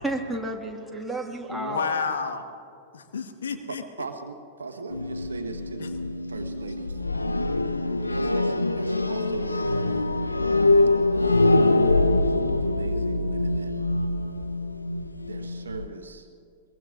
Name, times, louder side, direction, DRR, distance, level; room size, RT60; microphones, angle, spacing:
voice 1, 0.0-2.1, right 2 dB, 5° right, 0 dB, 1.9 m, -32 dB
voice 2, 1.5-2.4 2.9-3.8 5.8-5.9, left 5 dB, 70° left, 6 dB, 1.3 m, -30 dB
voice 3, 3.7-5.9 6.3-7.0 8.0-10.1 10.9-11.3 12.2-13.7 15.3-16.3, right 4 dB, 80° right, 6 dB, 1.2 m, -39 dB
sound 1, 4.9-15.9, left 2 dB, 90° left, 0.6 m, -24 dB
22.5 x 22.5 x 2.5 m, 2.3 s
figure-of-eight pair, 95°, 0 cm